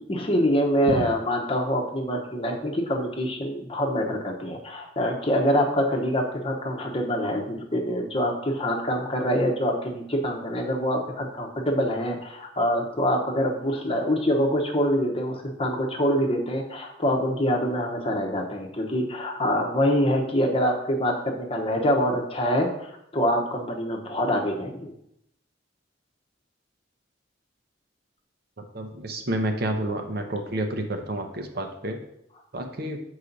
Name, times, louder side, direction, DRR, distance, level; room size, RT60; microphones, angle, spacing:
voice 1, 0.0-24.9, equal, 30° left, 2 dB, 0.9 m, -25 dB
voice 2, 28.6-32.0 32.5-33.0, right 1 dB, 55° right, 4 dB, 0.8 m, -29 dB
7.2 x 4.9 x 4.0 m, 0.77 s
head